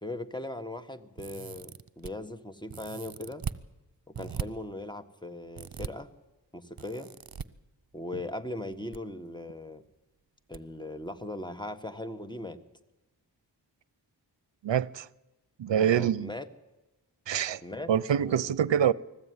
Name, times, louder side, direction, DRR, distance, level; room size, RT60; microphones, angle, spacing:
voice 1, 0.0-3.5 4.1-6.1 6.5-7.1 7.9-9.8 10.5-12.6 15.9-16.5 17.6-18.6, left 1 dB, 10° left, 1.6 m, -39 dB
sound 1, 1.2-2.1 2.7-3.6 4.1-4.5 5.6-5.9 6.8-7.5 8.6-9.0 9.3-9.4 10.5-10.6 11.0-11.1, right 7 dB, 55° right, 0.9 m, -38 dB
voice 2, 14.6-15.1 15.6-16.3 17.3-17.6 17.9-18.9, right 9 dB, 80° right, 0.6 m, -25 dB
20.5 x 15.0 x 9.6 m
cardioid pair, 45°, 43 cm